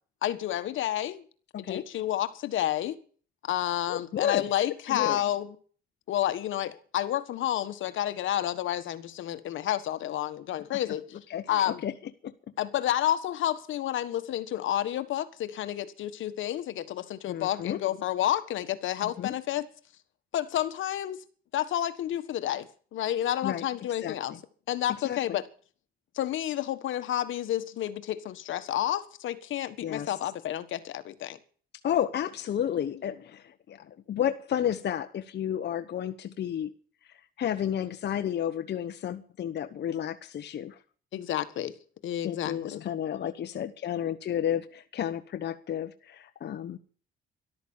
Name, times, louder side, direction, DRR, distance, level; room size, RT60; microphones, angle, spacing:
voice 1, 0.2-1.2 1.6-3.0 3.4-5.5 6.1-11.0 11.5-11.8 12.6-19.7 20.3-21.2 21.5-24.3 24.7-25.4 26.1-31.4 41.1-41.7 42.0-42.8, left 12 dB, 75° left, 12 dB, 1.6 m, -30 dB
voice 2, 1.5-1.9 3.9-4.4 4.9-5.2 11.3-11.9 12.2-12.3 17.3-17.8 19.0-19.3 23.4-23.6 24.0-24.1 25.0-25.2 29.8-30.1 31.8-36.7 37.1-40.8 42.2-46.8, left 10 dB, 60° left, 8 dB, 1.1 m, -32 dB
13.5 x 12.0 x 7.2 m, 0.43 s
cardioid pair, 90°, 20 cm